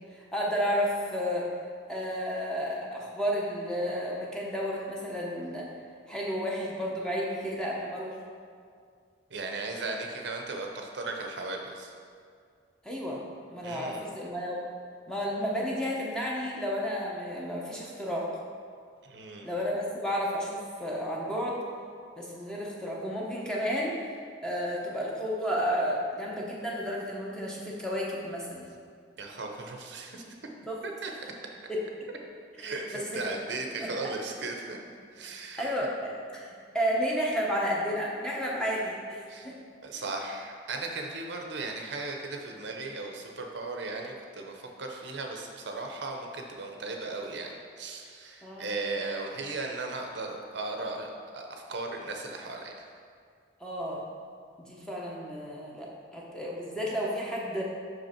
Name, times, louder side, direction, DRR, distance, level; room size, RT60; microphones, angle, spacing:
voice 1, 0.1-1.5 1.9-5.7 6.1-8.2 12.8-13.2 13.5-14.6 15.1-18.3 19.4-21.6 22.2-24.1 24.4-28.7 30.7-30.8 31.7-31.8 32.6-32.7 33.1-33.2 33.8-34.1 35.6-39.5 48.4-48.7 53.6-54.0 54.6-55.9 56.1-57.6, equal, 5° left, -4 dB, 0.9 m, -32 dB
voice 2, 9.3-11.9 13.6-14.0 19.0-19.5 29.2-30.4 30.8-31.1 32.6-34.8 35.1-35.7 39.3-39.5 39.8-52.9, right 3 dB, 65° right, 2 dB, 0.7 m, -37 dB
6.2 x 5.4 x 4.4 m, 2.1 s
head